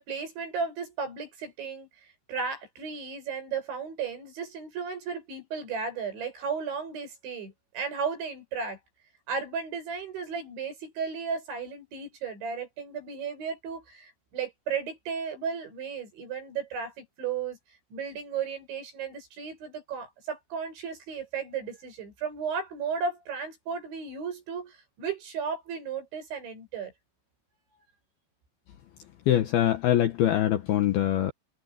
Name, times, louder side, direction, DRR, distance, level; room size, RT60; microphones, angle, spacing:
voice 1, 0.0-1.9 2.3-8.8 9.3-17.6 17.9-26.9, right 6 dB, 65° right, 9.4 m, -34 dB
voice 2, 29.3-31.3, left 12 dB, 70° left, 2.5 m, -23 dB
omnidirectional pair, 5.6 m